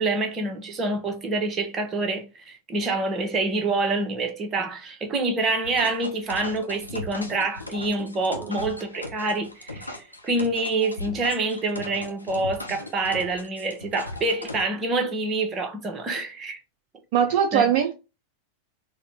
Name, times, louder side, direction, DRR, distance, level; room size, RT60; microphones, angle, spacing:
voice 1, 0.0-16.6 17.5-17.6, right 2 dB, 25° right, 0.9 m, -27 dB
sound 1, 5.6-14.6, left 2 dB, 85° left, 0.7 m, -38 dB
voice 2, 17.1-17.9, right 8 dB, 45° right, 0.4 m, -21 dB
4.0 x 2.1 x 4.0 m
figure-of-eight pair, 90°, 0 cm